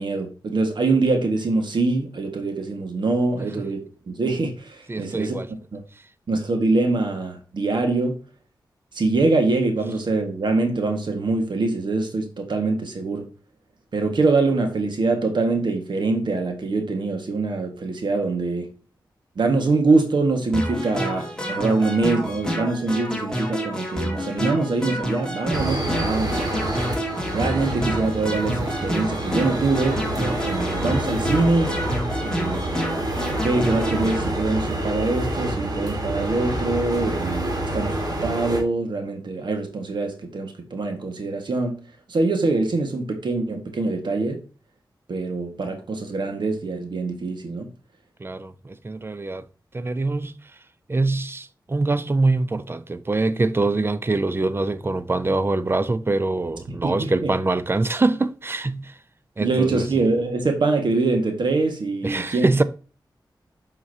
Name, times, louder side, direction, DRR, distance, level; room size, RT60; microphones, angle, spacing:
voice 1, 0.0-5.4 5.7-5.8 6.3-8.2 8.9-13.3 13.9-18.7 19.4-26.3 27.3-31.7 32.2-32.7 33.4-41.8 42.1-44.4 45.1-47.7 56.8-57.3 59.4-62.6, right 3 dB, 70° right, 1.7 m, -24 dB
voice 2, 4.9-5.5 48.2-49.5 49.7-50.3 50.9-59.0 59.4-59.8 62.0-62.6, right 2 dB, 30° right, 0.7 m, -24 dB
sound 1, 20.5-34.2, equal, 10° left, 2.4 m, -29 dB
sound 2, 25.5-38.6, right 1 dB, 55° right, 2.6 m, -27 dB
7.8 x 5.8 x 2.8 m
wide cardioid pair, 80°, 8 cm